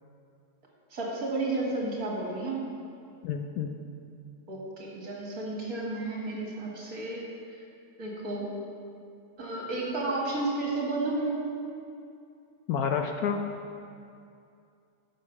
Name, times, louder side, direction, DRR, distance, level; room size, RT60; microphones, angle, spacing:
voice 1, 0.9-2.7 4.5-7.6 8.0-8.5 9.4-11.4, right 2 dB, 55° right, -3 dB, 2.4 m, -32 dB
voice 2, 3.2-3.7 12.7-13.4, left 6 dB, 70° left, 5 dB, 1.0 m, -29 dB
11.0 x 6.6 x 5.9 m, 2.5 s
omnidirectional pair, 1.9 m